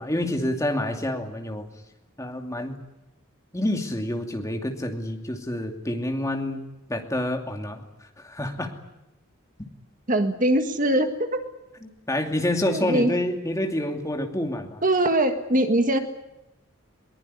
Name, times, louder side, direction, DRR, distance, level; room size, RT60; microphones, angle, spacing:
voice 1, 0.0-1.7 2.2-2.8 3.5-8.7 11.8-14.8, left 1 dB, 15° left, 3 dB, 2.7 m, -28 dB
voice 2, 10.1-11.4 12.7-13.1 14.8-16.0, right 1 dB, 40° right, 7 dB, 1.7 m, -22 dB
22.0 x 20.5 x 9.9 m, 0.92 s
head